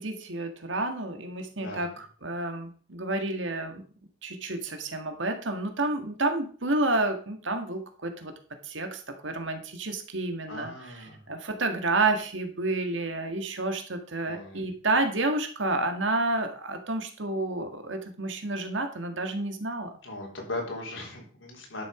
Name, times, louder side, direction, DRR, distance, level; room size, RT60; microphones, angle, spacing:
voice 1, 0.0-3.8 4.2-8.3 8.6-19.9, right 2 dB, 80° right, 6 dB, 1.9 m, -30 dB
voice 2, 10.5-11.2 14.3-14.6 20.0-21.9, left 2 dB, 85° left, 0 dB, 3.7 m, -38 dB
11.5 x 6.9 x 5.0 m, 0.42 s
head